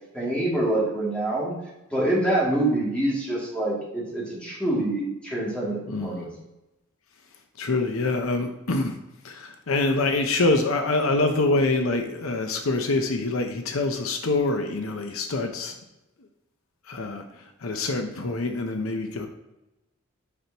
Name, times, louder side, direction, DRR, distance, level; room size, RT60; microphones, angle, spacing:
voice 1, 0.1-1.6 1.9-6.3, right 1 dB, 5° left, -6 dB, 2.6 m, -26 dB
voice 2, 5.9-6.3 7.6-9.0 9.2-15.7 16.9-17.2 17.6-19.3, left 2 dB, 75° left, 5 dB, 0.8 m, -25 dB
8.4 x 6.1 x 2.9 m, 0.95 s
head